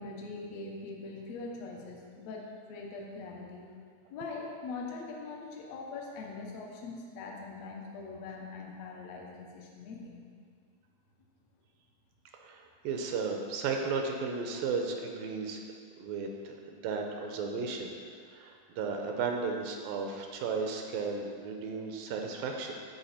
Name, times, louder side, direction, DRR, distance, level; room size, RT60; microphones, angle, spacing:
voice 1, 0.0-3.7 4.1-10.3, left 3 dB, 65° left, 0 dB, 1.7 m, -42 dB
voice 2, 12.4-15.6 16.0-17.9 18.3-22.7, right 4 dB, 80° right, 2 dB, 2.4 m, -34 dB
13.0 x 4.6 x 4.3 m, 2.1 s
omnidirectional pair, 4.3 m